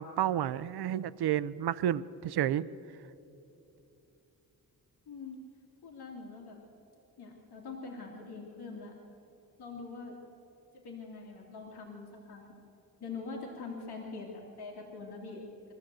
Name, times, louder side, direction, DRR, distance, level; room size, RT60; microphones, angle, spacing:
voice 1, 0.0-2.7, right 11 dB, 85° right, 17 dB, 0.6 m, -31 dB
voice 2, 5.1-5.4 5.8-6.6 7.2-8.9 9.6-10.2 10.8-12.5 13.0-15.4, left 4 dB, 90° left, -1 dB, 2.6 m, -43 dB
23.5 x 14.5 x 7.6 m, 2.9 s
wide cardioid pair, 170°, 38 cm